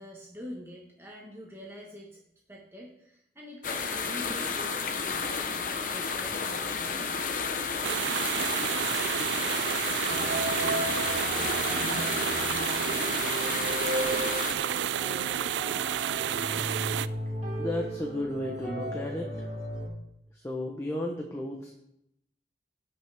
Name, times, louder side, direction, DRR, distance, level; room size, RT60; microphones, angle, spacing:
voice 1, 0.0-2.2 2.5-7.1, equal, 15° right, -2 dB, 1.2 m, -45 dB
sound 1, 3.6-14.5, left 5 dB, 50° left, 0.8 m, -32 dB
sound 2, 7.8-17.1, right 10 dB, 85° right, 0.3 m, -30 dB
sound 3, 10.1-19.9, right 1 dB, 40° right, 2.3 m, -35 dB
voice 2, 17.6-19.5 20.3-21.8, left 1 dB, 15° left, 0 dB, 0.9 m, -33 dB
16.5 x 5.9 x 3.4 m, 0.78 s
head